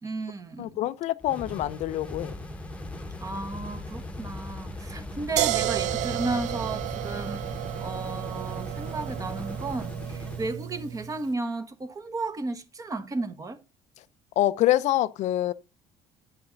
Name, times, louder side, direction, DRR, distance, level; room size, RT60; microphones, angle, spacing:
voice 1, 0.0-0.7 3.2-13.6, right 3 dB, 25° right, 1.3 m, -34 dB
voice 2, 0.6-2.3 14.4-15.5, left 14 dB, 60° left, 0.5 m, -25 dB
sound 1, 1.2-10.6, left 1 dB, 10° left, 1.2 m, -39 dB
sound 2, 5.4-11.2, right 13 dB, 65° right, 0.5 m, -31 dB
8.5 x 5.7 x 3.9 m
cardioid pair, 105°, 13 cm